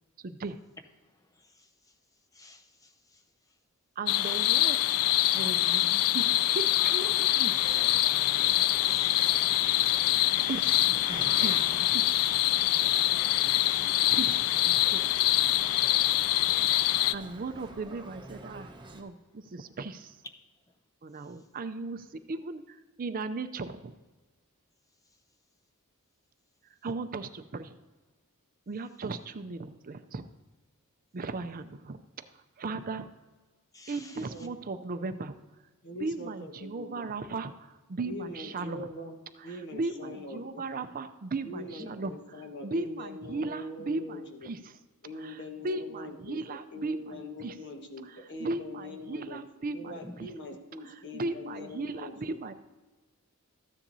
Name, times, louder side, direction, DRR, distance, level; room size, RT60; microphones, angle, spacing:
voice 1, 0.2-0.6 4.0-4.9 5.3-7.6 10.5-12.3 14.1-15.0 17.1-20.1 21.0-23.9 26.8-27.8 28.7-30.2 31.1-32.0 32.6-33.1 33.9-35.3 36.0-38.9 39.5-44.7 45.2-45.4 45.6-46.4 46.8-47.5 48.1-50.3 50.8-52.5, right 3 dB, 40° right, 0.5 m, -37 dB
voice 2, 1.3-1.9 2.3-3.2 8.4-9.4 18.5-18.7 33.7-34.5 38.4-38.5 41.8-41.9 50.0-50.2, left 1 dB, 15° left, 0.7 m, -53 dB
sound 1, 4.1-17.1, left 14 dB, 75° left, 0.3 m, -25 dB
Boat Water vehicle, 7.6-19.0, right 2 dB, 20° right, 1.0 m, -47 dB
voice 3, 34.2-34.5 35.8-37.1 38.0-39.1 39.4-40.7 41.4-44.5 45.0-46.4 46.7-49.4 49.7-52.4, left 2 dB, 55° left, 1.3 m, -42 dB
14.0 x 10.0 x 2.7 m
head